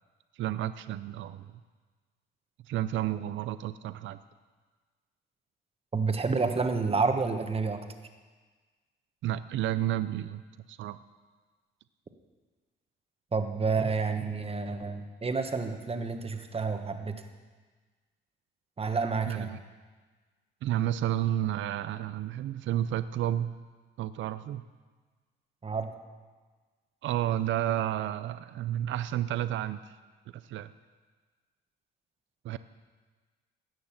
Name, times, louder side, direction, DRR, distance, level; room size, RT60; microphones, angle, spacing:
voice 1, 0.4-1.5 2.7-4.2 9.2-10.4 10.7-11.0 19.3-19.6 20.6-23.6 24.0-24.6 27.0-29.9 30.3-30.7 32.4-32.6, right 12 dB, 75° right, 13 dB, 0.5 m, -31 dB
voice 2, 5.9-7.8 13.3-17.1 18.8-19.5 25.6-25.9, right 4 dB, 30° right, 6 dB, 1.3 m, -29 dB
17.0 x 6.4 x 7.3 m, 1.4 s
cardioid pair, 90°, 20 cm